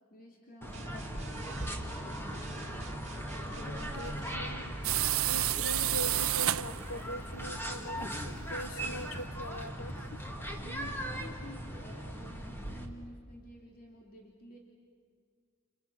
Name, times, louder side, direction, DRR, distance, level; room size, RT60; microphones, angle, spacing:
voice 1, 0.1-2.8 3.6-3.9 10.6-14.6, left 1 dB, 45° left, 0 dB, 3.0 m, -51 dB
sound 1, 0.6-12.8, right 1 dB, 10° left, 2.4 m, -39 dB
sound 2, 0.7-4.6, right 1 dB, 35° right, 2.4 m, -46 dB
voice 2, 3.6-4.7 5.3-10.2, equal, 85° left, 10 dB, 1.5 m, -42 dB
sound 3, 4.8-7.0, right 14 dB, 75° right, 0.6 m, -29 dB
29.5 x 29.5 x 6.3 m, 2.1 s
head